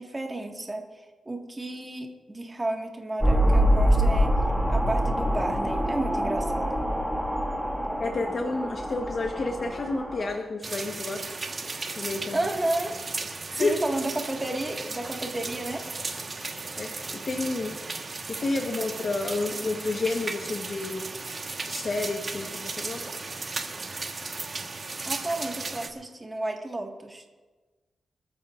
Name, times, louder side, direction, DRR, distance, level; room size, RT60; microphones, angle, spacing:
voice 1, 0.0-4.3 4.7-6.8 12.3-12.9 13.5-15.9 25.0-27.3, right 2 dB, 20° right, 2 dB, 1.7 m, -32 dB
sound 1, 3.2-10.4, equal, ahead, 1.9 m, -25 dB
voice 2, 8.0-11.2 11.8-12.5 13.5-13.8 16.8-17.8 18.3-21.1 21.6-23.0, left 3 dB, 45° left, 1 dB, 1.2 m, -30 dB
sound 2, 10.6-25.9, right 3 dB, 35° right, 1.3 m, -35 dB
25.0 x 14.0 x 2.5 m, 1.3 s
wide cardioid pair, 110°, 0 cm